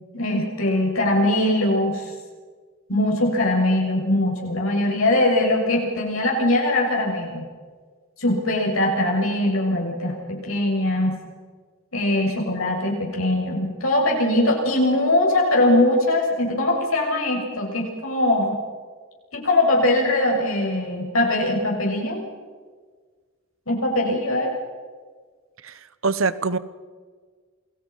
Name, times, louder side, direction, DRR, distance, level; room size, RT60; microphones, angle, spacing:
voice 1, 0.1-2.1 2.9-7.5 8.2-11.2 11.9-18.6 19.3-22.2 23.7-24.5, left 1 dB, 80° left, -2 dB, 6.9 m, -21 dB
voice 2, 25.6-26.6, right 4 dB, 75° right, 15 dB, 1.1 m, -24 dB
28.5 x 21.5 x 5.7 m, 1.5 s
head